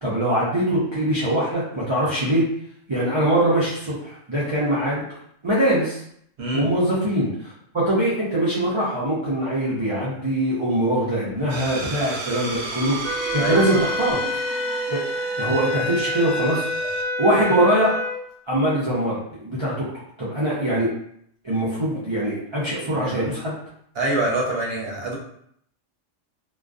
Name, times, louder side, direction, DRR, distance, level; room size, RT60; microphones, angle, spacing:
voice 1, 0.0-2.4 2.9-5.0 5.4-6.0 6.5-14.4 14.9-15.0 15.4-16.6 17.2-17.9 18.5-19.8 20.2-20.9 21.4-23.5, right 1 dB, 45° right, -8 dB, 0.3 m, -22 dB
sound 1, 11.5-17.0, right 3 dB, 85° right, 0.9 m, -33 dB
sound 2, 13.0-18.2, left 1 dB, ahead, 0.8 m, -27 dB
voice 2, 13.3-13.6 22.9-23.3 23.9-25.1, right 2 dB, 60° right, -2 dB, 0.8 m, -25 dB
2.5 x 2.2 x 2.3 m, 0.68 s
omnidirectional pair, 1.3 m